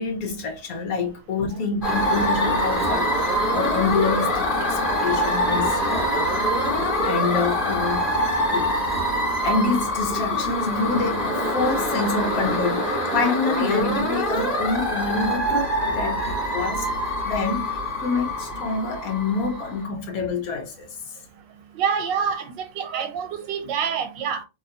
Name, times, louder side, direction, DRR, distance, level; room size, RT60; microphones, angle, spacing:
voice 1, 0.0-6.2 6.7-8.2 8.5-8.8 9.4-16.9 17.2-20.9, left 4 dB, 60° left, 1.3 m, -27 dB
sound 1, 1.8-19.8, equal, 30° left, 1.5 m, -24 dB
voice 2, 21.7-24.4, right 7 dB, 90° right, 1.4 m, -27 dB
3.1 x 2.9 x 2.7 m
omnidirectional pair, 1.9 m